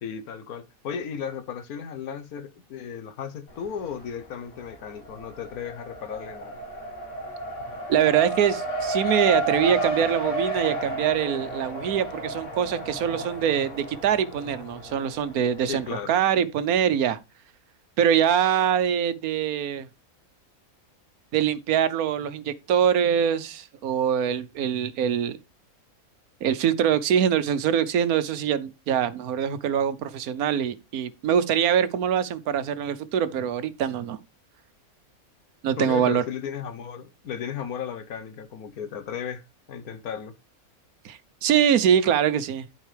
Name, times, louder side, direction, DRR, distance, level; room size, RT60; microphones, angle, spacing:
voice 1, 0.0-6.6 15.7-16.1 35.8-39.4 39.7-40.3, left 7 dB, 85° left, 1.4 m, -35 dB
Race car auto racing, 3.5-4.2 4.5-15.9, right 1 dB, 55° left, 2.0 m, -32 dB
voice 2, 7.9-17.2 18.0-19.9 21.3-25.4 26.4-34.2 35.6-36.2 41.0-42.7, right 9 dB, 85° right, 1.3 m, -24 dB
12.5 x 4.5 x 3.2 m
omnidirectional pair, 1.5 m